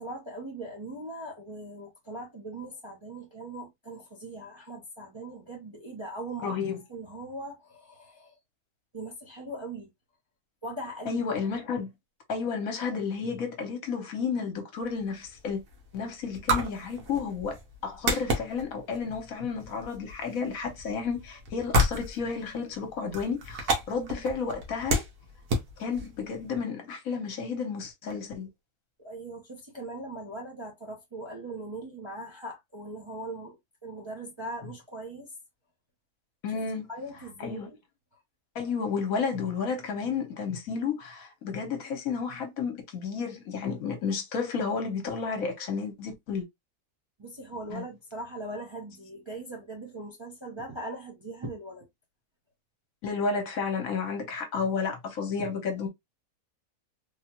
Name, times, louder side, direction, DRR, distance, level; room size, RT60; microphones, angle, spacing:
voice 1, 0.0-6.6 6.9-8.4 8.9-9.9 10.6-11.2 29.0-33.6 33.8-35.3 36.9-37.8 47.2-51.9, right 1 dB, 25° right, 0.6 m, -40 dB
voice 2, 6.4-6.8 11.1-11.9 12.3-15.6 15.9-17.6 17.8-25.0 25.8-28.5 36.4-36.9 37.4-37.7 38.5-46.4 47.7-47.8 53.0-55.9, left 5 dB, 70° left, 1.2 m, -32 dB
sound 1, 14.8-26.6, equal, 85° right, 1.5 m, -32 dB
3.5 x 2.3 x 2.8 m
omnidirectional pair, 1.6 m